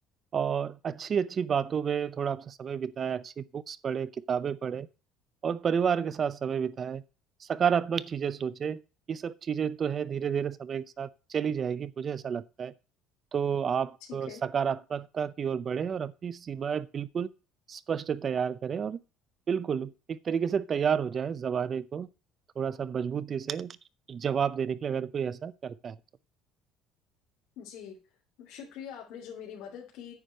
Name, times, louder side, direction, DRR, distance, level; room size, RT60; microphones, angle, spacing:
voice 1, 0.3-4.9 5.4-7.0 7.4-8.8 9.1-12.7 13.3-17.3 17.7-19.0 19.5-22.1 22.6-23.8 24.1-26.0, right 7 dB, 35° right, 0.6 m, -30 dB
voice 2, 14.1-14.4 27.6-28.0 28.4-30.1, left 8 dB, 70° left, 3.1 m, -43 dB
9.5 x 5.0 x 7.5 m
cardioid pair, 140°, 0 cm